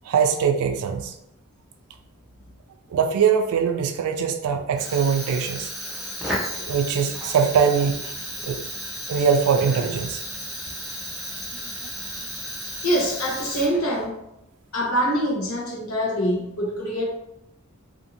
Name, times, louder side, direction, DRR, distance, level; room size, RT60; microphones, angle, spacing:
voice 1, 0.1-1.1 2.9-5.7 6.7-8.0 8.4-8.6 9.1-10.2, right 6 dB, 90° right, 7 dB, 0.3 m, -22 dB
Fire, 4.7-14.1, equal, ahead, 0.4 m, -33 dB
voice 2, 12.8-14.1 14.7-17.0, equal, 80° left, -3 dB, 0.9 m, -24 dB
2.5 x 2.5 x 2.7 m, 0.82 s
head